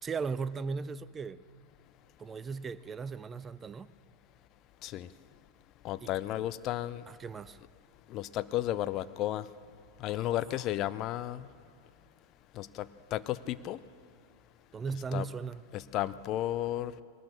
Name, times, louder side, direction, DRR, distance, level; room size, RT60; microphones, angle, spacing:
voice 1, 0.0-1.4 2.2-3.9 6.0-6.1 7.1-7.6 10.1-10.3 14.7-15.6, right 5 dB, 20° right, 0.5 m, -37 dB
voice 2, 5.8-7.0 8.1-9.5 10.0-11.5 12.6-13.8 15.1-15.3 15.7-16.9, left 13 dB, 35° left, 0.5 m, -33 dB
21.0 x 19.0 x 6.7 m
figure-of-eight pair, 90°, 0 cm